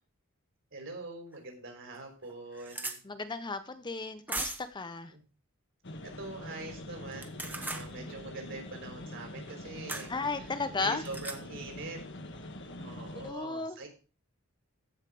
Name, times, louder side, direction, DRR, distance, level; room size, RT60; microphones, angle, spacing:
voice 1, 0.7-3.0 5.1-5.2 6.0-10.1 10.7-12.0 12.7-13.9, right 2 dB, 60° right, 3 dB, 4.0 m, -44 dB
sound 1, 1.3-1.4 1.9-2.0 2.2-3.0 4.3-4.8 7.1-7.9 9.9-10.1 11.0-11.4, right 2 dB, 10° right, 1.2 m, -37 dB
voice 2, 3.0-5.1 10.1-11.0 13.1-13.8, left 3 dB, 20° left, 11 dB, 0.6 m, -35 dB
sound 2, 5.8-13.3, left 1 dB, 55° left, 1.5 m, -44 dB
15.0 x 5.6 x 4.9 m, 0.35 s
head